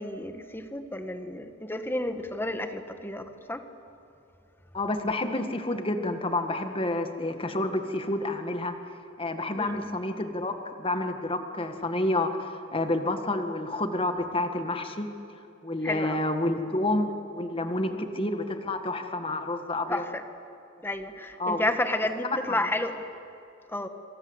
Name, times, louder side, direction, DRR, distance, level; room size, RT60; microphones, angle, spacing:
voice 1, 0.0-3.6 9.6-9.9 15.8-16.2 17.9-18.1 19.9-20.2 20.8-23.0 23.7-23.9, left 1 dB, 10° left, 8 dB, 1.6 m, -31 dB
voice 2, 4.7-8.7 9.2-15.1 15.6-20.0 21.4-21.7, left 2 dB, 25° left, 7 dB, 1.9 m, -29 dB
27.0 x 26.5 x 8.1 m, 2.8 s
head